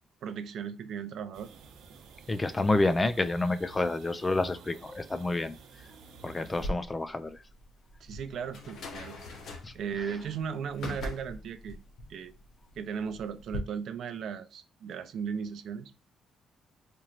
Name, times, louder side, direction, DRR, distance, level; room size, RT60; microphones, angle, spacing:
voice 1, 0.2-1.5 8.0-11.8 12.1-12.3 12.7-15.9, right 7 dB, 60° right, 0.5 m, -37 dB
sound 1, 1.3-6.7, right 4 dB, 80° right, 0.9 m, -51 dB
voice 2, 2.3-5.9 6.2-7.4 9.6-9.7, left 2 dB, 15° left, 0.3 m, -29 dB
sound 2, 6.5-13.6, left 1 dB, 60° left, 1.0 m, -42 dB
4.4 x 3.0 x 2.4 m
cardioid pair, 165°, 0 cm